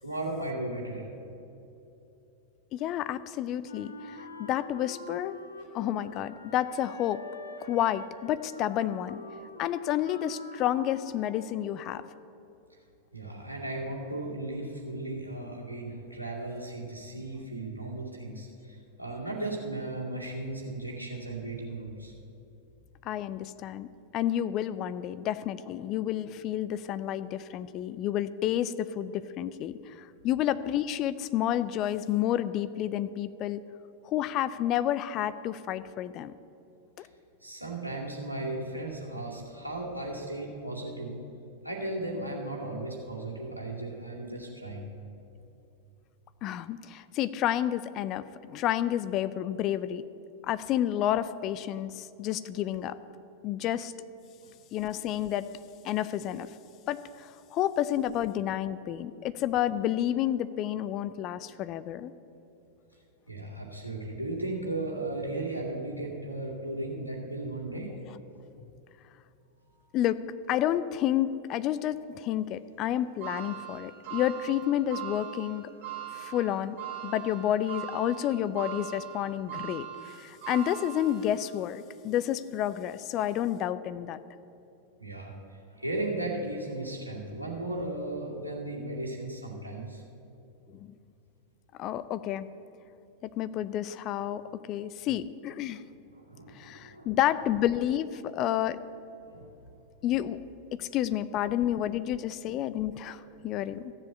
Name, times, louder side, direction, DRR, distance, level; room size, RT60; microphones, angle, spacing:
voice 1, 0.0-1.1 13.1-22.1 37.0-37.1 37.4-41.2 41.6-44.9 54.4-54.5 63.3-67.9 85.0-85.4 85.7-90.0 96.2-97.1 99.2-99.5, right 2 dB, 85° right, -2 dB, 2.3 m, -36 dB
voice 2, 2.7-5.4 5.7-7.2 7.6-9.2 9.6-12.0 23.0-23.9 24.1-33.6 34.0-36.3 37.0-37.1 46.4-50.0 50.5-53.0 53.4-53.9 54.7-55.5 55.8-56.5 56.9-62.1 69.9-70.2 70.5-75.7 76.1-76.8 77.0-84.2 90.7-90.8 91.8-92.5 93.2-95.8 96.5-98.8 100.0-100.4 100.7-103.9, left 11 dB, 35° left, 14 dB, 0.5 m, -30 dB
Wind instrument woodwind instrument, 3.6-11.8, left 2 dB, 75° left, 0.9 m, -46 dB
sound 1, 73.2-81.6 82.1-82.2 83.3-83.4, right 12 dB, 45° right, 3.6 m, -41 dB
14.0 x 7.6 x 8.1 m, 2.8 s
figure-of-eight pair, 90°, 0 cm